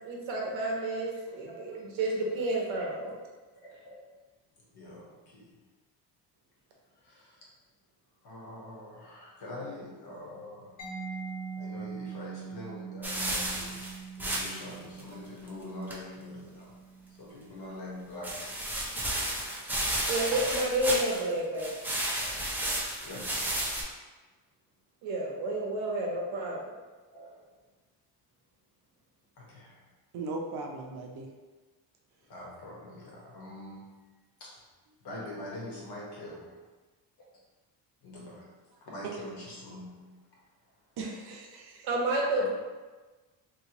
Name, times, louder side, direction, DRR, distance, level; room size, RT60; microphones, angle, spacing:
voice 1, 0.0-3.2 20.1-21.7 25.0-26.8 41.8-42.5, right 1 dB, 85° right, -1 dB, 1.0 m, -30 dB
voice 2, 3.6-4.1 4.7-5.5 7.0-7.3 8.2-10.7 11.6-13.8 14.2-16.7 17.2-18.6 21.5-21.7 22.2-22.5 23.0-23.5 25.8-25.9 27.1-27.4 29.4-29.8 32.3-33.9 34.4-34.5 35.0-36.3 38.0-38.5 38.9-40.1 42.4-42.5, left 1 dB, 60° left, -4 dB, 1.3 m, -44 dB
Mallet percussion, 10.8-18.3, right 5 dB, 80° left, 1.4 m, -43 dB
sound 1, 13.0-14.7 15.0-15.1 15.5-15.6 15.9-16.0 18.2-21.3 21.6-23.8, right 1 dB, 5° right, 0.5 m, -32 dB
voice 3, 30.1-31.3 39.0-39.2 41.0-41.9, right 3 dB, 55° right, 1 dB, 0.7 m, -38 dB
3.0 x 3.0 x 2.9 m, 1.2 s
cardioid pair, 110°, 45 cm